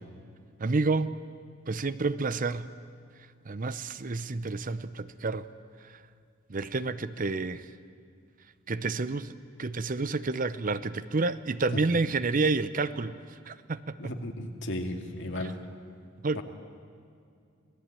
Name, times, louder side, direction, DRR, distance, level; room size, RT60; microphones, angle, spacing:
voice 1, 0.6-1.1 1.7-2.7 3.5-5.5 5.8-6.0 6.5-7.7 8.7-9.3 9.6-14.1 15.4-15.5 16.2-16.4, right 3 dB, 40° right, 14 dB, 0.7 m, -29 dB
voice 2, 14.0-15.6 16.4-16.5, left 1 dB, 60° left, 4 dB, 2.3 m, -35 dB
26.5 x 18.0 x 9.0 m, 2.4 s
head